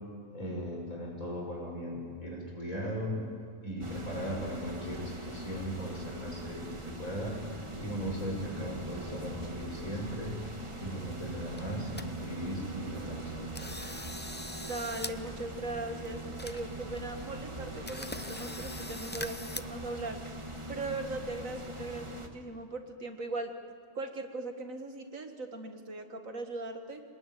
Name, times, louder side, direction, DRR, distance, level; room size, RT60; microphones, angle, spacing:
voice 1, 0.3-3.2 3.6-10.4 10.8-13.8, equal, 90° left, -1 dB, 6.6 m, -38 dB
sound 1, 3.8-22.3, right 1 dB, 20° right, 1.7 m, -42 dB
sound 2, 11.6-12.1 12.5-12.6 13.0-13.2 13.5-15.1 15.4-15.5 16.0-16.1 16.4-17.0 17.3-17.4 17.8-19.6, left 2 dB, 15° left, 0.4 m, -42 dB
voice 2, 14.6-20.2 20.7-23.5 23.9-27.0, right 2 dB, 75° right, 5 dB, 2.3 m, -39 dB
26.5 x 19.5 x 9.4 m, 2.1 s
omnidirectional pair, 1.4 m